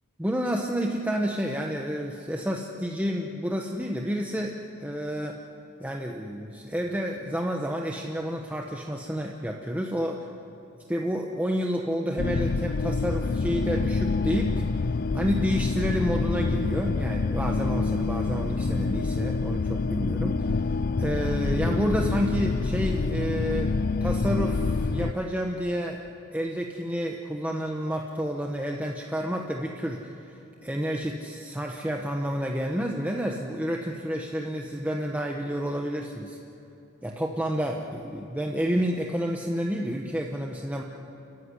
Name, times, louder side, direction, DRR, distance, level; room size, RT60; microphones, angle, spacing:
voice 1, 0.2-4.5 4.8-5.4 5.8-10.3 10.9-14.6 15.1-20.6 21.0-23.7 24.0-26.0 26.3-36.4 37.0-40.8, equal, 5° right, 1 dB, 1.1 m, -30 dB
sound 1, 12.2-25.1, left 3 dB, 45° left, 0.5 m, -27 dB
29.5 x 15.0 x 9.8 m, 2.8 s
head